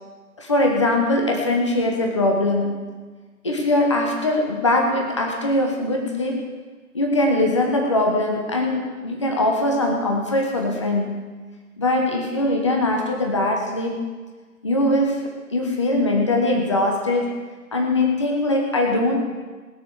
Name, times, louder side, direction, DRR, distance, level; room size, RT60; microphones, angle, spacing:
voice 1, 0.4-2.8 3.4-6.4 6.9-11.3 11.8-14.0 14.6-17.3 17.7-19.2, left 1 dB, 20° left, 1 dB, 1.0 m, -21 dB
20.0 x 6.9 x 6.4 m, 1.4 s
figure-of-eight pair, 155°, 47 cm